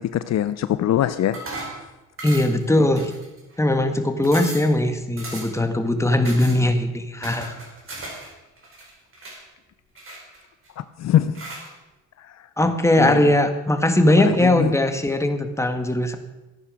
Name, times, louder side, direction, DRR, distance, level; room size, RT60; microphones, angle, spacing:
voice 1, 0.0-1.4 2.7-2.9 10.8-11.4 12.2-13.3 14.2-14.7, left 11 dB, 60° left, 13 dB, 0.6 m, -24 dB
sound 1, 1.3-1.8 2.2-2.6 3.0-3.6 3.9-4.0 4.2-4.7 5.2-5.6 6.2-6.6 7.2-8.3 8.6-9.4 10.0-10.7 11.3-11.7, right 2 dB, 45° right, 5.0 m, -36 dB
voice 2, 2.2-3.1 3.6-7.6 12.6-16.2, left 1 dB, 10° left, 7 dB, 1.6 m, -20 dB
14.0 x 9.6 x 6.3 m, 1.1 s
cardioid pair, 90°, 30 cm